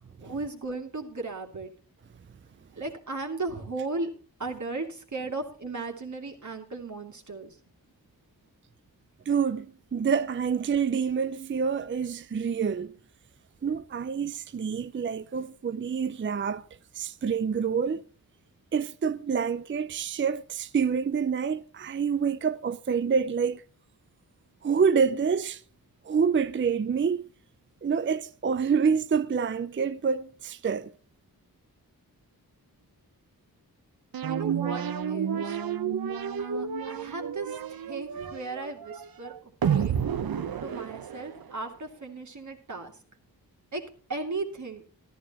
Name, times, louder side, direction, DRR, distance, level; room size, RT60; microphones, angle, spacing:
voice 1, 0.0-1.7 2.7-4.1 4.4-7.6 34.3-35.6 36.4-40.0 40.6-42.9 43.7-43.8 44.1-44.8, right 3 dB, 50° right, 2.5 m, -36 dB
voice 2, 9.3-9.7 9.9-13.0 13.6-16.7 16.9-18.0 18.7-23.6 24.6-25.6 26.0-27.3 27.8-30.9, right 6 dB, 35° right, 0.4 m, -27 dB
sound 1, 34.1-41.6, right 8 dB, 70° right, 0.9 m, -30 dB
13.5 x 13.5 x 3.0 m
wide cardioid pair, 130°, 37 cm